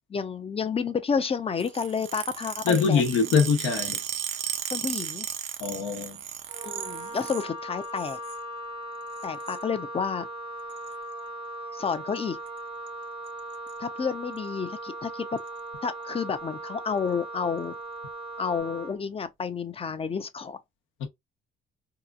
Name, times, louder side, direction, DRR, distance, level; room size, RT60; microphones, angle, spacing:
voice 1, 0.1-3.0 4.4-5.3 6.6-8.2 9.2-10.3 11.7-12.4 13.8-15.4 15.8-17.7 18.4-20.6, left 6 dB, 30° left, 0.5 m, -30 dB
sound 1, 1.6-7.5 7.8-8.4 9.1-9.6 10.7-10.9 11.9-12.2 12.5-12.6 12.9-13.0 13.3-13.7 14.4-14.5 15.4-15.5, right 10 dB, 70° right, 0.6 m, -35 dB
voice 2, 2.6-4.0 5.6-6.2 21.0-21.1, left 6 dB, 80° left, 0.9 m, -23 dB
Wind instrument woodwind instrument, 6.5-19.0, right 1 dB, 30° right, 0.6 m, -38 dB
2.8 x 2.4 x 2.3 m
cardioid pair, 90°, 20 cm